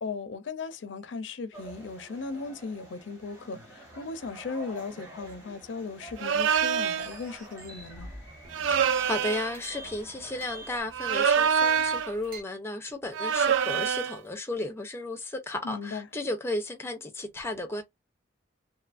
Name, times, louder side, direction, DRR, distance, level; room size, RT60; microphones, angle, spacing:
voice 1, 0.0-8.1 15.6-16.1, left 4 dB, 65° left, 0.4 m, -37 dB
sound 1, 1.5-10.8, right 2 dB, 10° right, 1.3 m, -49 dB
sound 2, 6.2-7.1 8.5-9.6 10.9-12.1 13.1-14.2, right 7 dB, 70° right, 0.3 m, -25 dB
sound 3, 7.0-12.4, right 2 dB, 45° right, 1.1 m, -46 dB
voice 2, 8.7-17.8, left 2 dB, 15° left, 0.5 m, -34 dB
2.6 x 2.4 x 2.4 m
head